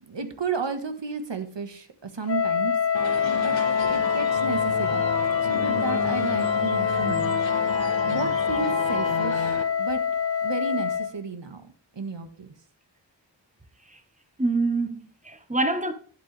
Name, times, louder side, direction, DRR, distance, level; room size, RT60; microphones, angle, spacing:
voice 1, 0.0-2.8 3.4-3.6 3.9-5.1 5.4-7.4 8.1-10.0 10.4-12.5, right 5 dB, 70° right, 1.6 m, -33 dB
Wind instrument woodwind instrument, 2.3-11.2, left 7 dB, 30° left, 0.7 m, -25 dB
sound 1, 2.9-9.6, left 4 dB, 85° left, 1.6 m, -31 dB
voice 2, 14.4-15.9, right 2 dB, 15° right, 1.5 m, -26 dB
11.0 x 8.8 x 3.4 m
wide cardioid pair, 55°, 45 cm